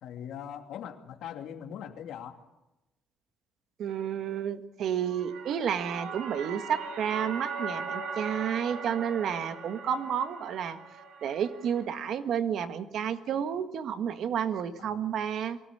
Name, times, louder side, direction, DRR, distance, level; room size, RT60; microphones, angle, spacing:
voice 1, 0.0-2.4 14.8-15.1, left 9 dB, 70° left, 5 dB, 2.7 m, -41 dB
voice 2, 3.8-10.8 11.2-15.6, right 8 dB, 55° right, 9 dB, 1.7 m, -31 dB
sound 1, 4.9-11.9, right 4 dB, 80° right, 6.6 m, -39 dB
23.5 x 17.0 x 8.7 m, 0.98 s
cardioid pair, 160°, 0 cm